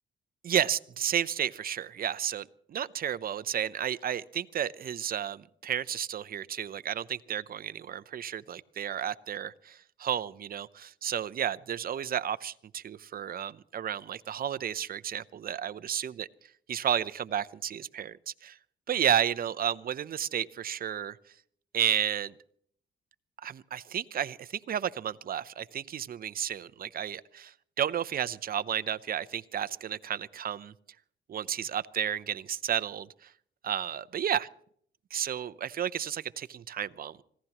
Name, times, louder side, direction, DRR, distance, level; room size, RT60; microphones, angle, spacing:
voice 1, 0.4-16.3 16.7-18.2 18.4-18.6 18.9-21.2 21.7-22.3 23.4-30.7 31.3-33.1 33.6-34.5 35.1-37.2, right 9 dB, 50° right, 15 dB, 0.7 m, -32 dB
25.5 x 16.5 x 3.0 m, 0.62 s
cardioid pair, 90°, 20 cm